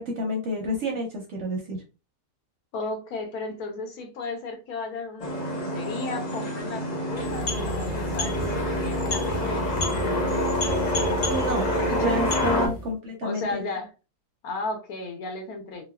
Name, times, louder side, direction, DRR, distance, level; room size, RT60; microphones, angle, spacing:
voice 1, 0.0-1.8 11.2-13.6, equal, 60° right, 1 dB, 0.8 m, -30 dB
voice 2, 2.7-10.2 12.5-12.7 13.2-13.9 14.4-15.8, left 3 dB, 75° left, 3 dB, 1.1 m, -34 dB
sound 1, 5.2-12.7, left 1 dB, 45° left, 0.5 m, -27 dB
sound 2, 7.1-12.9, left 1 dB, 90° left, 1.3 m, -32 dB
3.2 x 2.0 x 2.2 m, 0.31 s
omnidirectional pair, 1.7 m